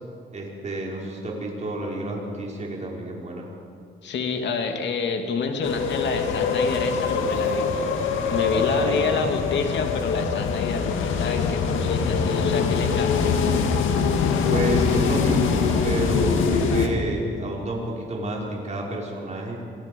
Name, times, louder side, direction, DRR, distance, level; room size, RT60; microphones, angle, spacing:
voice 1, 0.3-3.5 8.5-9.2 14.5-19.6, right 1 dB, 35° right, -3 dB, 5.9 m, -30 dB
voice 2, 4.0-13.3, left 4 dB, 65° left, 4 dB, 2.6 m, -28 dB
sound 1, 5.6-16.9, left 5 dB, 85° left, 1.9 m, -23 dB
26.5 x 18.5 x 5.5 m, 2.3 s
cardioid pair, 90°, 20 cm